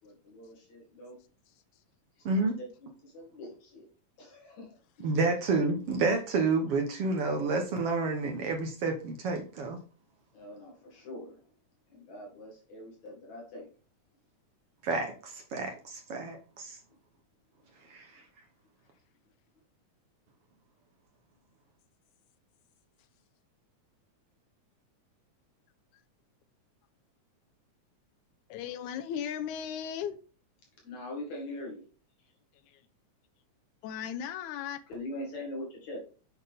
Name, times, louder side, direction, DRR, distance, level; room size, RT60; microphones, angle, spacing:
voice 1, 0.0-1.2 2.3-3.9 4.2-4.8 10.3-11.4 11.9-13.7 18.1-18.2 30.8-31.8 34.9-36.0, left 1 dB, 70° left, 3.4 m, -43 dB
voice 2, 2.2-2.6 5.0-9.8 14.8-16.8 17.9-18.1, right 3 dB, 65° right, 1.7 m, -29 dB
voice 3, 28.5-30.1 33.8-34.8, left 9 dB, 85° left, 2.1 m, -36 dB
8.2 x 6.1 x 3.5 m
omnidirectional pair, 3.5 m